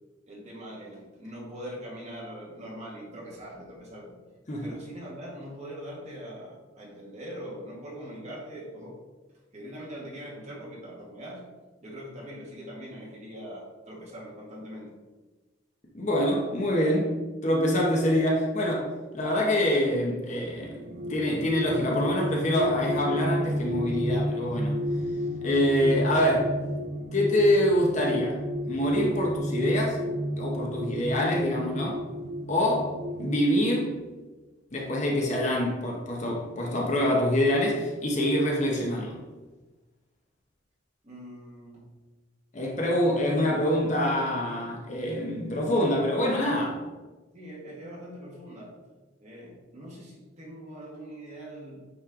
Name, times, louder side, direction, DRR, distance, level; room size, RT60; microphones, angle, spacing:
voice 1, 0.3-4.2 4.6-9.0 9.5-11.5 11.8-14.9 41.0-41.9 44.5-44.8 47.3-48.7 49.2-51.8, equal, 35° right, -5 dB, 1.9 m, -42 dB
voice 2, 15.9-17.2 17.4-18.9 19.1-24.8 25.4-26.5 27.1-30.0 30.4-32.0 32.5-33.9 34.7-39.2 42.5-46.8, left 1 dB, 35° left, -2 dB, 1.0 m, -25 dB
sound 1, 20.7-33.5, equal, 55° right, 0.7 m, -31 dB
8.8 x 3.2 x 3.7 m, 1.2 s
head